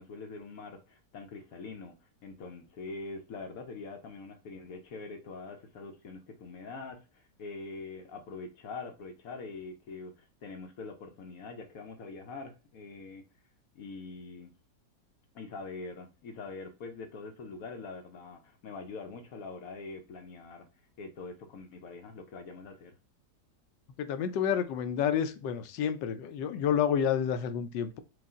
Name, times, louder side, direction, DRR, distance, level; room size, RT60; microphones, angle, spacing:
voice 1, 0.0-13.2 13.7-14.5 15.3-20.7 21.0-22.9, left 3 dB, 65° left, 5 dB, 1.0 m, -44 dB
voice 2, 24.0-28.0, left 8 dB, 90° left, 10 dB, 1.3 m, -29 dB
4.9 x 2.5 x 3.6 m, 0.31 s
omnidirectional pair, 1.9 m